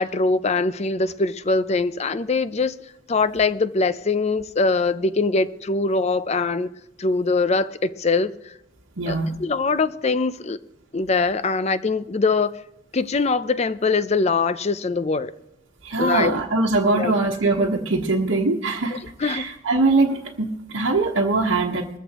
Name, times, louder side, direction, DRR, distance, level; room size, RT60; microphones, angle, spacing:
voice 1, 0.0-2.8 3.1-6.7 7.0-8.5 9.1-10.6 10.9-12.5 12.9-15.3 16.0-16.4 16.9-17.1 18.9-19.5, left 3 dB, 35° left, 0.5 m, -22 dB
voice 2, 9.0-9.3 15.8-21.9, right 3 dB, 85° right, 1.2 m, -22 dB
21.0 x 14.0 x 3.0 m
head